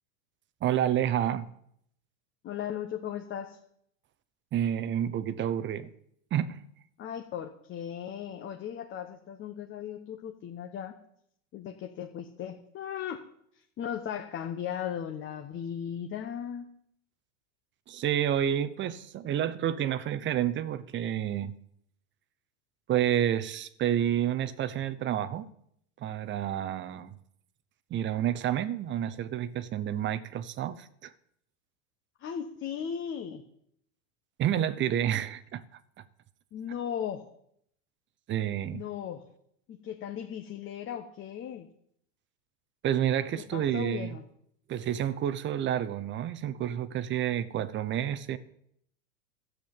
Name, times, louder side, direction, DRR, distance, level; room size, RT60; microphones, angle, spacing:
voice 1, 0.6-1.5 4.5-5.9 6.3-6.6 17.9-21.5 22.9-25.5 26.0-27.2 27.9-31.1 34.4-35.8 38.3-38.8 42.8-44.2 44.7-48.4, right 10 dB, 30° right, 0.8 m, -29 dB
voice 2, 2.4-3.6 7.0-10.9 11.5-13.2 13.5-16.7 32.2-33.4 36.5-37.3 38.7-39.3 39.7-41.7 43.5-44.3, left 9 dB, 30° left, 1.2 m, -37 dB
13.5 x 7.7 x 8.8 m
supercardioid pair, 125°, 40 cm